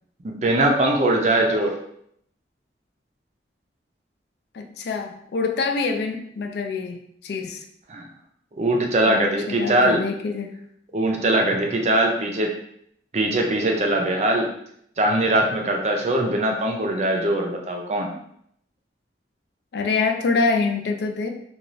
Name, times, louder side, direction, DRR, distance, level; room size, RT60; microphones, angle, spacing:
voice 1, 0.2-1.7 7.9-8.0 8.5-10.0 10.9-12.5 13.1-14.5 15.0-18.1, right 1 dB, 40° right, 1 dB, 0.4 m, -21 dB
voice 2, 4.5-7.6 9.0-10.5 19.7-21.3, left 4 dB, 65° left, 4 dB, 0.3 m, -25 dB
3.0 x 2.3 x 2.5 m, 0.69 s
head